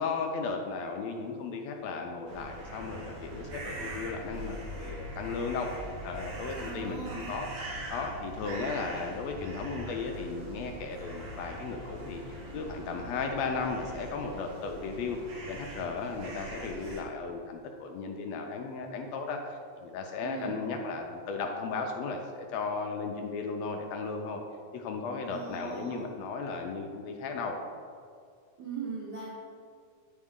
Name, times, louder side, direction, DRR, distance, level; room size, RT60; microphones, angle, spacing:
voice 1, 0.0-7.5 7.9-15.2 15.5-24.4 24.7-27.6, left 4 dB, 75° left, 3 dB, 1.7 m, -35 dB
sound 1, 2.3-17.0, right 1 dB, 55° right, 1.5 m, -42 dB
voice 2, 6.6-7.4 20.2-20.6 25.3-26.1 28.6-29.3, right 5 dB, 80° right, -5 dB, 0.9 m, -39 dB
9.7 x 4.2 x 3.7 m, 2.2 s
omnidirectional pair, 3.3 m